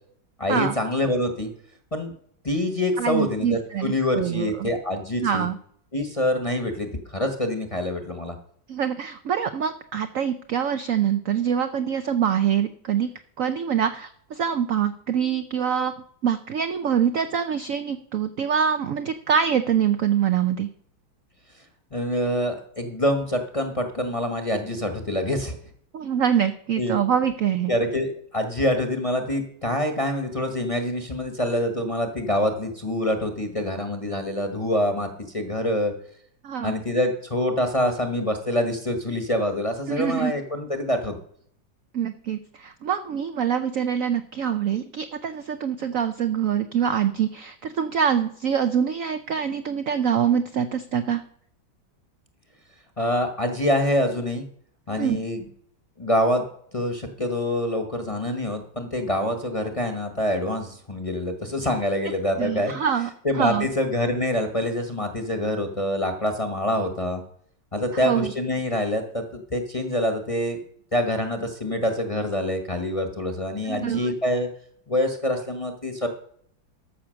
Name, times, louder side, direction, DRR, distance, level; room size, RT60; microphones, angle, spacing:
voice 1, 0.4-1.5 1.9-2.1 2.4-5.5 5.9-8.4 21.9-25.6 26.8-26.9 27.7-35.9 36.6-41.2 53.0-54.4 54.9-55.5 56.0-56.5 56.7-62.7 63.2-67.2 67.7-70.6 70.9-74.5 74.9-76.1, left 1 dB, 25° left, 5 dB, 0.9 m, -25 dB
voice 2, 3.0-4.7 5.2-5.6 8.7-13.1 13.4-15.9 16.2-20.7 25.9-27.7 36.4-36.7 39.9-40.3 41.9-51.2 55.0-55.2 62.4-63.1 63.3-63.7 68.0-68.3 73.6-74.1, right 8 dB, 75° right, 10 dB, 0.7 m, -24 dB
13.5 x 5.8 x 6.3 m, 0.64 s
omnidirectional pair, 2.1 m